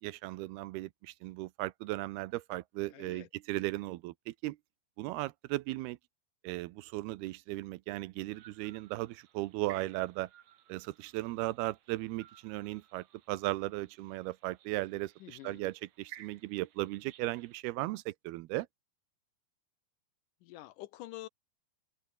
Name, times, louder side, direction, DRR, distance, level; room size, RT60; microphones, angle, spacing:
voice 1, 0.0-4.6 5.0-6.0 6.4-10.3 10.7-18.7, right 18 dB, 85° right, 2.6 m, -37 dB
voice 2, 2.9-3.3 15.2-15.6 20.4-21.3, left 16 dB, 90° left, 1.9 m, -47 dB
sound 1, 8.2-17.6, right 11 dB, 60° right, 1.9 m, -58 dB
open air
omnidirectional pair, 4.7 m